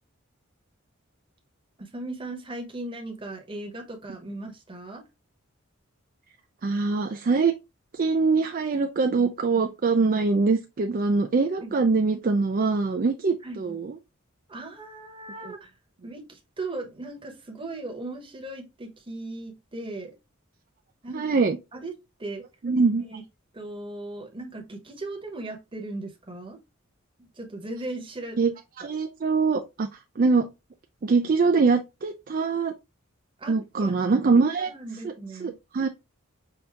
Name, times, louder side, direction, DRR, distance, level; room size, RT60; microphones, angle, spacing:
voice 1, 1.8-5.0 11.6-11.8 13.4-13.7 14.5-15.7 16.0-20.2 21.0-21.4 21.7-22.5 23.1-23.2 23.5-26.6 27.2-28.4 28.8-28.9 33.4-34.0 34.3-35.5, right 2 dB, 25° right, 1.0 m, -38 dB
voice 2, 6.6-7.5 7.9-14.0 21.1-21.6 22.6-23.0 28.4-28.5 28.8-29.9 30.2-30.5 31.0-32.7 33.5-34.7 35.0-35.1 35.4-35.9, right 4 dB, 40° right, 0.4 m, -23 dB
5.8 x 2.7 x 3.4 m
head